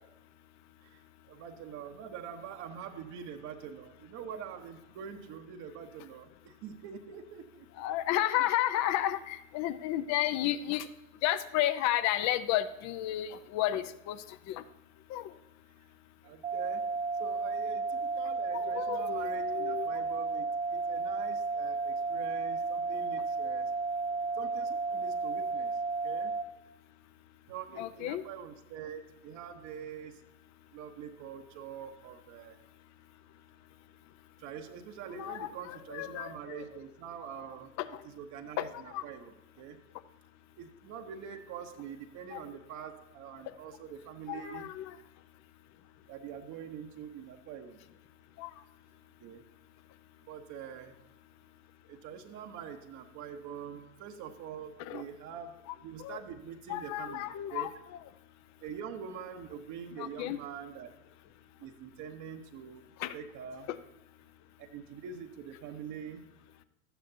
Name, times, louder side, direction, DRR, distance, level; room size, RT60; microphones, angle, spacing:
voice 1, 1.3-7.7 16.2-20.5 20.9-23.7 24.4-25.7 26.0-26.3 27.5-30.2 30.7-32.6 34.4-37.7 38.0-39.8 40.6-44.7 46.1-47.8 49.2-49.4 50.3-51.0 51.9-57.7 58.6-60.9 61.6-62.8 63.1-63.7 64.6-66.3, right 8 dB, 45° right, 4 dB, 1.0 m, -44 dB
voice 2, 7.8-10.9 11.2-14.2 14.5-14.6 15.1-15.3 18.5-19.9 27.8-28.2 35.1-36.6 37.8-37.9 38.6-39.0 42.3-42.4 44.3-45.0 48.4-48.5 54.8-55.0 56.0-56.2 56.7-57.7 60.0-60.4 63.0-63.1 63.7-63.8, left 13 dB, 40° left, 14 dB, 0.7 m, -32 dB
sound 1, 16.4-26.4, right 4 dB, 15° right, 0.5 m, -33 dB
12.5 x 9.0 x 2.7 m, 0.96 s
hypercardioid pair, 100°, 41 cm